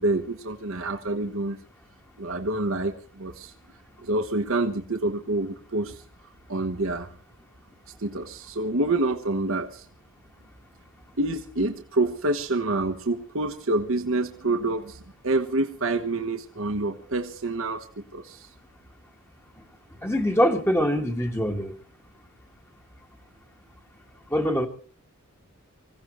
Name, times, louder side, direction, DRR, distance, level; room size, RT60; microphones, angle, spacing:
voice 1, 0.0-1.6 2.2-3.5 4.0-6.0 6.5-7.1 8.0-9.9 11.2-18.5, right 2 dB, 70° right, 5 dB, 1.2 m, -27 dB
voice 2, 20.0-21.8 24.3-24.7, equal, 10° left, 3 dB, 1.6 m, -23 dB
25.5 x 16.0 x 3.1 m, 0.39 s
head